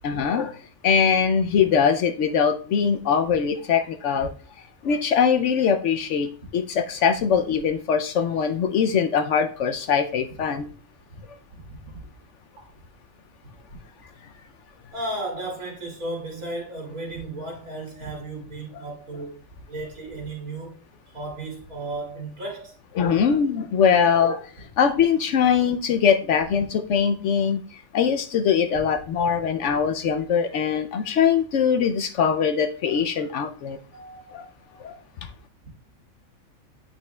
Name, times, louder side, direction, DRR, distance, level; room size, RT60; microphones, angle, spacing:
voice 1, 0.0-0.6 0.8-4.3 4.8-10.7 23.0-33.8 34.3-34.4 34.8-34.9, left 7 dB, 65° left, 0.8 m, -22 dB
voice 2, 11.5-12.0 12.6-12.7 14.9-19.4 19.7-20.8 21.1-22.7 33.9-35.0, right 2 dB, 85° right, 3.0 m, -35 dB
8.7 x 5.8 x 2.2 m
omnidirectional pair, 1.5 m